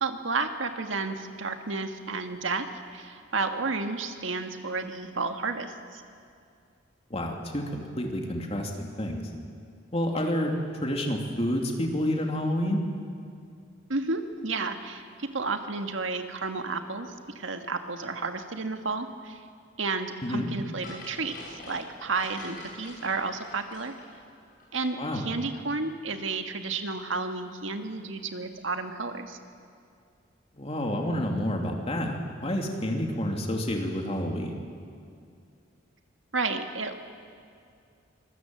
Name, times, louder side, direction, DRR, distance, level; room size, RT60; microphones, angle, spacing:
voice 1, 0.0-6.0 13.9-19.4 19.8-23.9 24.7-29.4 36.3-37.0, right 3 dB, 75° right, 6 dB, 1.8 m, -32 dB
voice 2, 7.1-9.3 9.9-10.5 10.8-12.8 20.2-20.5 25.0-25.2 30.6-34.6, equal, 30° left, 2 dB, 2.8 m, -29 dB
sound 1, 20.8-24.9 25.1-25.2, left 2 dB, 50° left, 7.9 m, -45 dB
25.0 x 21.0 x 7.8 m, 2.4 s
head